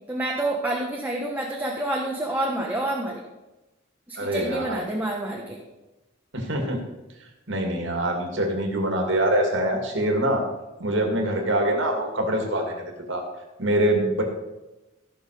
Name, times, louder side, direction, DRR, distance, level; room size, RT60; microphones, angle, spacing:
voice 1, 0.1-3.2 4.1-5.6, right 1 dB, 10° right, -2 dB, 1.2 m, -28 dB
voice 2, 4.2-4.7 6.3-6.8 7.5-10.4 10.8-13.2 13.6-14.2, right 1 dB, 65° right, 2 dB, 2.5 m, -24 dB
15.5 x 6.5 x 5.0 m, 1.0 s
head